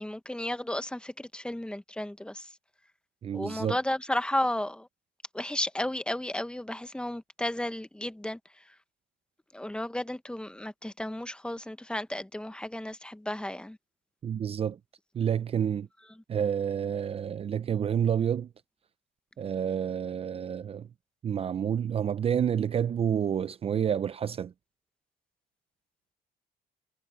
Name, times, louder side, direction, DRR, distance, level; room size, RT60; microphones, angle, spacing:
voice 1, 0.0-2.5 3.3-4.9 5.3-8.4 9.5-13.8, left 1 dB, 5° left, 1.1 m, -33 dB
voice 2, 3.2-3.8 14.2-14.8 15.1-15.9 16.3-18.5 19.4-20.9 21.2-24.5, right 8 dB, 35° right, 0.6 m, -29 dB
cardioid pair, 110°, 17 cm